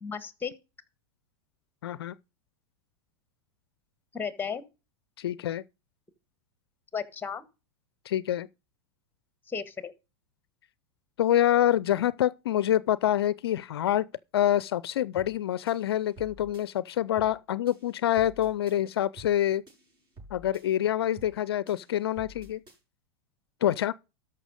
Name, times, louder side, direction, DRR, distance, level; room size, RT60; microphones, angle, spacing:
voice 1, 0.0-0.5 4.1-4.6 6.9-7.4 9.5-9.9, left 6 dB, 15° left, 1.5 m, -34 dB
voice 2, 1.8-2.1 5.2-5.6 8.1-8.5 11.2-14.1 14.3-19.6 20.3-22.6 23.6-23.9, left 12 dB, 75° left, 0.5 m, -26 dB
sound 1, 15.2-15.4 15.7-16.7 17.2-17.4 17.7-18.8 19.2-19.4 19.7-20.7 21.2-21.4 21.7-22.8, right 1 dB, 35° right, 6.3 m, -50 dB
13.5 x 5.7 x 5.1 m
hypercardioid pair, 95°, 13 cm